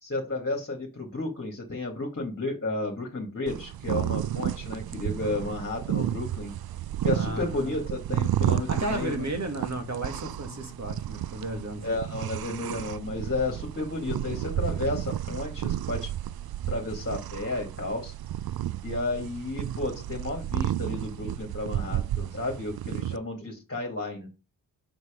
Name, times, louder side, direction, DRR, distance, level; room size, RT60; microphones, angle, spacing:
voice 1, 0.0-6.5 7.0-9.2 11.8-16.1 16.7-18.1 18.8-24.3, left 2 dB, 30° left, 2.2 m, -32 dB
sound 1, 3.5-23.2, right 12 dB, 55° right, 0.5 m, -32 dB
voice 2, 7.1-7.8 8.7-11.8, right 1 dB, 40° right, 2.1 m, -33 dB
6.2 x 4.1 x 5.1 m
cardioid pair, 60°, 44 cm